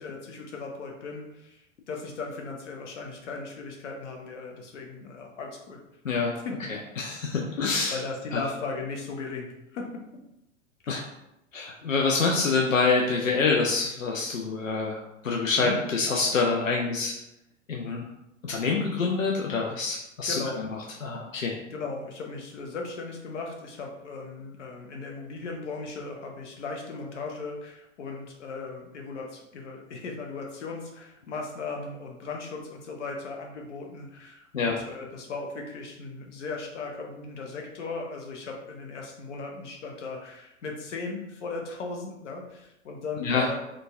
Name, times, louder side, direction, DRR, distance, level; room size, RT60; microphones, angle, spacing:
voice 1, 0.0-1.6 1.9-5.8 6.3-6.5 7.3-7.4 7.9-9.8 10.8-11.0 15.5-15.8 20.3-20.7 21.6-43.6, left 4 dB, 65° left, 1 dB, 0.8 m, -37 dB
voice 2, 7.0-8.0 8.3-8.5 10.9-11.0 11.5-15.0 15.2-17.1 17.7-18.1 18.4-20.7 21.0-21.6 34.5-34.8 43.2-43.5, left 4 dB, 90° left, -1 dB, 0.5 m, -26 dB
3.7 x 2.3 x 2.4 m, 0.88 s
figure-of-eight pair, 100°, 38 cm